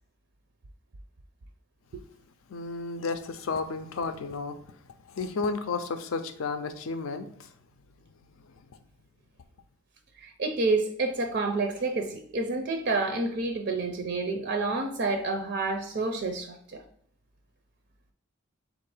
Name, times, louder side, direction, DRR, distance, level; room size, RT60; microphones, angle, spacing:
voice 1, 2.5-4.8 5.1-7.5 8.7-8.8, left 4 dB, 75° left, 9 dB, 0.5 m, -32 dB
voice 2, 10.2-16.8, right 3 dB, 55° right, 4 dB, 0.5 m, -29 dB
3.8 x 2.5 x 4.7 m, 0.65 s
head